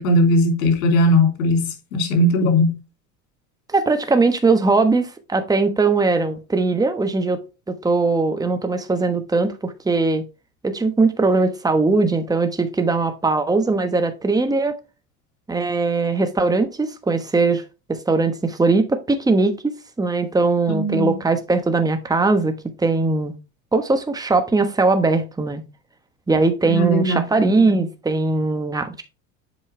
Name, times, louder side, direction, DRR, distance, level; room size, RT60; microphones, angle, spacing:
voice 1, 0.0-2.8 20.7-21.2 26.7-27.2, left 1 dB, 85° left, 3.2 m, -18 dB
voice 2, 3.7-7.4 7.7-10.2 10.6-14.8 15.5-17.6 17.9-19.7 20.0-23.3 23.7-25.6 26.3-29.0, right 3 dB, 10° right, 1.2 m, -20 dB
7.8 x 5.4 x 3.3 m
supercardioid pair, 100°, 40 cm